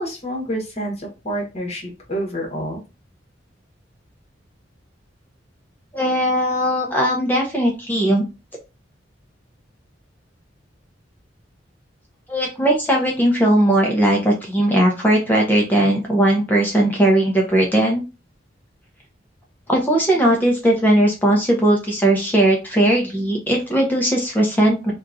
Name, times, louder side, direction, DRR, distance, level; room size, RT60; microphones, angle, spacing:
voice 1, 0.0-2.8, equal, 35° left, -1 dB, 1.2 m, -28 dB
voice 2, 5.9-8.2 12.3-18.0 19.7-24.9, right 1 dB, 10° left, -1 dB, 0.5 m, -18 dB
2.9 x 2.3 x 2.5 m, 0.29 s
head